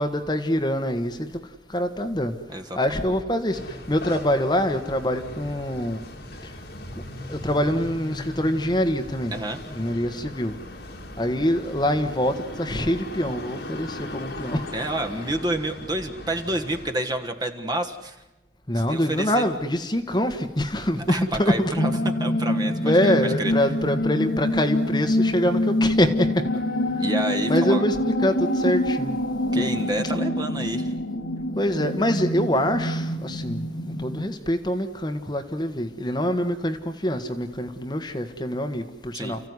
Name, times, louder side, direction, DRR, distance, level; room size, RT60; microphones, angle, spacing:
voice 1, 0.0-1.4 1.7-2.4 2.7-6.0 7.3-9.3 9.7-10.5 11.2-14.7 18.7-21.7 22.8-26.4 27.5-29.2 29.5-29.7 31.6-39.4, equal, 25° left, 6 dB, 1.4 m, -25 dB
sound 1, 3.5-16.9, left 1 dB, 65° left, 2.8 m, -38 dB
voice 2, 14.7-18.2 18.7-19.4 21.1-23.5 27.0-27.8 29.5-30.9 39.1-39.4, right 1 dB, 25° right, 6 dB, 1.5 m, -29 dB
sound 2, 21.7-34.3, left 1 dB, 85° left, 2.8 m, -26 dB
30.0 x 15.0 x 9.7 m, 1.0 s
head